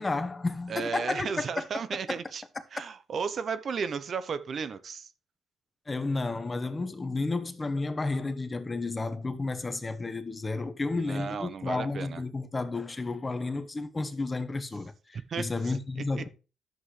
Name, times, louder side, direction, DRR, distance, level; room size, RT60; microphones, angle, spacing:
voice 1, 0.0-1.7 2.1-2.2 5.9-16.3, left 3 dB, 25° left, 1.0 m, -32 dB
voice 2, 0.7-2.4 2.7-5.1 10.9-12.2 15.3-15.8 16.2-16.3, right 6 dB, 50° right, 0.7 m, -34 dB
11.0 x 7.8 x 3.2 m
cardioid pair, 90°, 0 cm